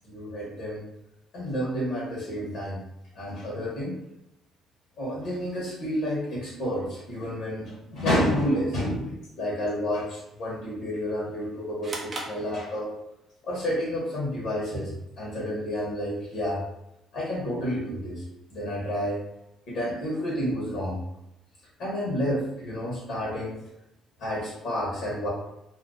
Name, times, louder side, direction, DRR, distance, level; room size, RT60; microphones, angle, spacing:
voice 1, 0.0-0.8 1.3-2.8 3.2-3.9 5.0-9.0 9.4-12.9 13.4-16.6 17.1-18.2 18.5-19.2 19.7-21.0 21.8-23.6 24.2-25.3, equal, 60° left, -6 dB, 1.3 m, -30 dB
sound 1, 11.8-13.2, right 2 dB, 30° right, 0.6 m, -38 dB
2.6 x 2.5 x 3.9 m, 0.87 s
cardioid pair, 135°, 0 cm